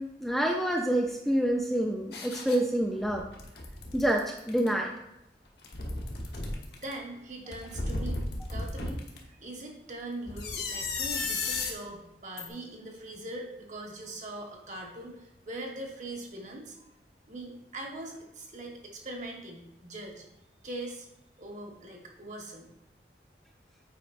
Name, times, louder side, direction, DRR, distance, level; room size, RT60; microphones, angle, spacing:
voice 1, 0.0-3.2 3.9-4.9, right 1 dB, ahead, 1 dB, 0.4 m, -27 dB
sound 1, 2.1-2.6 3.0-4.7 5.5-6.9 7.5-9.2 10.3-11.7 12.4-12.5, left 3 dB, 65° left, 1.1 m, -34 dB
voice 2, 6.8-16.8 17.3-20.2 20.6-21.1 21.4-22.7, right 1 dB, 45° right, 0 dB, 1.3 m, -41 dB
8.4 x 4.9 x 2.5 m, 0.87 s
head